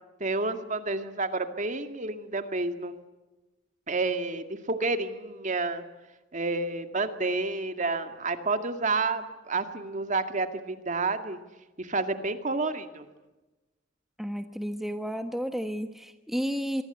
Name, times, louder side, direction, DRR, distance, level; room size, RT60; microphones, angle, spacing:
voice 1, 0.2-2.9 3.9-5.8 6.3-11.4 11.8-13.1, right 3 dB, 40° right, 8 dB, 2.1 m, -30 dB
voice 2, 14.2-16.8, equal, ahead, 7 dB, 1.1 m, -32 dB
24.5 x 24.0 x 8.1 m, 1.1 s
head